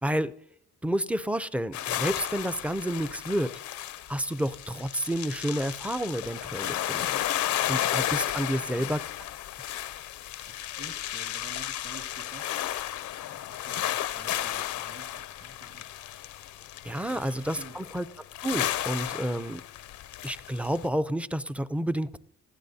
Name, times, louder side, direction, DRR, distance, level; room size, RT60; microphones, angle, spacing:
voice 1, 0.0-0.3 0.8-3.5 4.1-7.1 7.7-9.0 16.8-18.1 18.4-19.6 20.2-22.2, right 1 dB, 5° right, 14 dB, 0.5 m, -30 dB
sound 1, 1.7-20.9, left 12 dB, 70° left, 0.6 m, -33 dB
voice 2, 10.4-12.5 13.3-16.0 17.1-17.8, right 3 dB, 50° right, 3 dB, 2.1 m, -50 dB
21.0 x 15.0 x 2.8 m, 0.71 s
cardioid pair, 90°, 30 cm